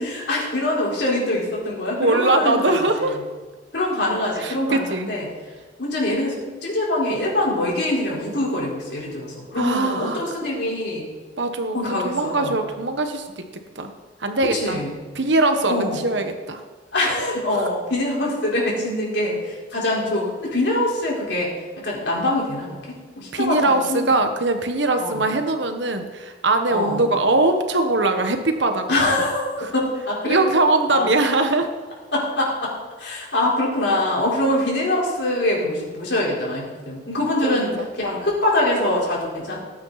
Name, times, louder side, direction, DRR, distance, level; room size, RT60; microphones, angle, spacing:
voice 1, 0.0-3.2 3.7-5.3 5.8-11.1 11.7-12.6 14.5-14.9 15.7-16.0 16.9-21.5 21.8-24.1 25.0-25.3 26.7-27.1 28.9-30.4 30.9-31.1 32.1-32.7 33.0-39.6, left 1 dB, 65° left, -4 dB, 4.6 m, -24 dB
voice 2, 2.0-3.2 4.4-5.1 9.6-10.2 11.4-13.4 13.7-13.9 14.2-14.8 15.1-16.6 17.6-17.7 23.3-28.8 29.6-29.7 30.2-31.7 37.4-37.9, right 2 dB, 75° right, 6 dB, 1.4 m, -21 dB
18.5 x 9.4 x 4.2 m, 1.4 s
head